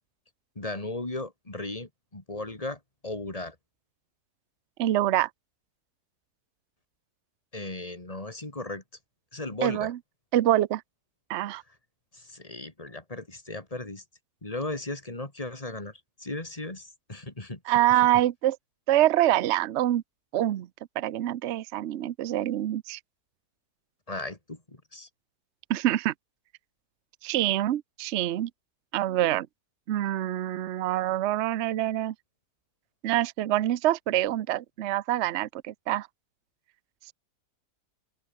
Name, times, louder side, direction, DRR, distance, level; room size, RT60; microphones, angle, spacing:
voice 1, 0.5-3.6 7.5-8.8 9.3-9.9 12.1-14.0 14.4-17.6 24.1-25.1, left 2 dB, 20° left, 3.0 m, -36 dB
voice 2, 4.8-5.3 9.6-10.0 10.3-10.8 11.3-11.6 17.7-18.6 18.9-20.0 20.3-20.7 21.0-23.0 25.7-26.1 27.2-28.5 28.9-29.5 29.9-32.1 33.0-36.1, right 13 dB, 60° right, 0.8 m, -25 dB
open air
omnidirectional pair, 1.7 m